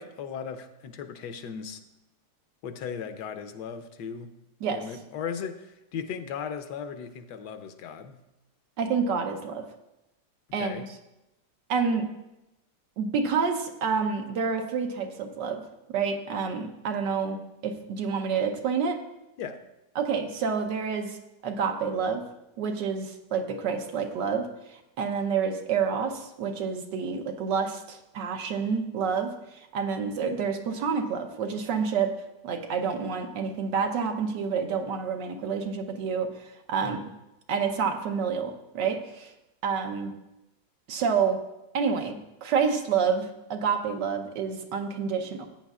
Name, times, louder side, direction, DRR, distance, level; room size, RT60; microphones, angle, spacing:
voice 1, 0.0-1.8 2.6-4.3 4.7-8.2 10.5-10.9 19.4-19.7 36.8-37.0, left 7 dB, 75° left, 9 dB, 1.3 m, -37 dB
voice 2, 8.8-9.7 10.5-10.8 11.7-12.1 13.0-15.6 15.9-17.4 17.6-19.0 20.0-21.2 21.4-22.2 22.6-32.2 32.4-37.1 37.5-39.3 39.6-40.1 40.9-41.4 41.7-45.5, right 6 dB, 85° right, 5 dB, 1.6 m, -28 dB
14.5 x 9.1 x 2.4 m, 0.93 s
omnidirectional pair, 1.9 m